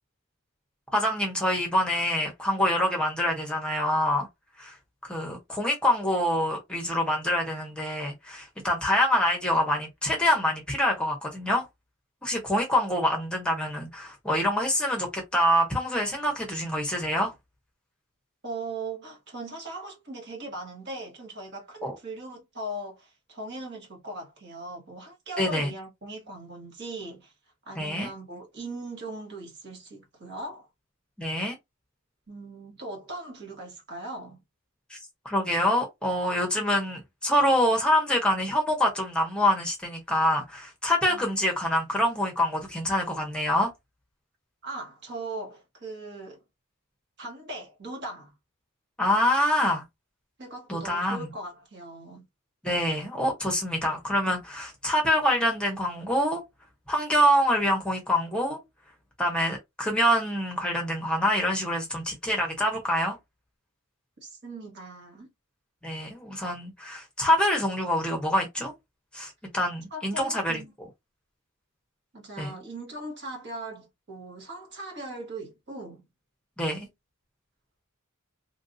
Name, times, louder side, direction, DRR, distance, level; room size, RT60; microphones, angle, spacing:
voice 1, 0.9-4.3 4.6-4.8 5.0-11.7 12.2-17.3 21.8-22.0 25.4-25.7 27.7-28.1 31.2-31.5 34.9-35.0 35.2-43.7 49.0-49.8 50.7-51.3 52.6-56.4 56.9-58.6 59.2-63.2 65.8-68.7 69.1-70.6 72.4-72.5 76.6-76.9, equal, 5° left, 0.8 m, -26 dB
voice 2, 18.4-27.3 27.6-30.7 32.3-34.4 41.1-41.4 44.6-46.4 47.2-48.3 50.4-52.2 64.2-65.3 69.9-70.7 72.1-76.0, right 2 dB, 55° right, 1.4 m, -39 dB
3.1 x 2.6 x 2.6 m
head